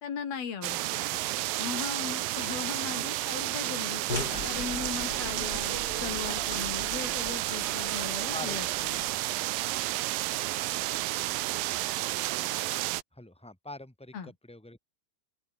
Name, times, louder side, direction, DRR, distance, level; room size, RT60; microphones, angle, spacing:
voice 1, 0.0-1.2 1.6-9.0 14.1-14.3, left 7 dB, 90° left, 5.6 m, -38 dB
sound 1, 0.6-13.0, right 17 dB, 80° right, 2.5 m, -31 dB
sound 2, 4.1-9.2, left 3 dB, 25° left, 3.9 m, -40 dB
voice 2, 13.1-14.8, left 2 dB, ahead, 5.1 m, -43 dB
open air
omnidirectional pair, 4.2 m